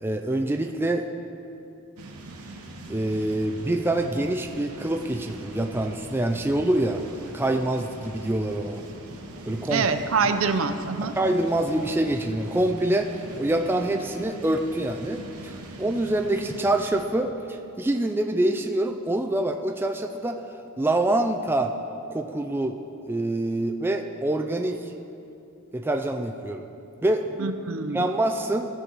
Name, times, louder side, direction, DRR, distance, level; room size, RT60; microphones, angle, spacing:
voice 1, 0.0-1.1 2.9-7.0 7.3-8.8 9.5-9.9 11.2-13.1 13.4-20.4 20.8-21.7 22.1-22.8 23.1-24.8 25.7-26.6 27.0-27.4 27.9-28.7, right 1 dB, 10° right, 4 dB, 0.3 m, -25 dB
sound 1, 2.0-17.0, right 1 dB, 85° right, 1.1 m, -42 dB
voice 2, 9.7-11.1 27.4-28.1, right 5 dB, 65° right, 8 dB, 0.6 m, -25 dB
16.5 x 6.1 x 4.0 m, 2.9 s
head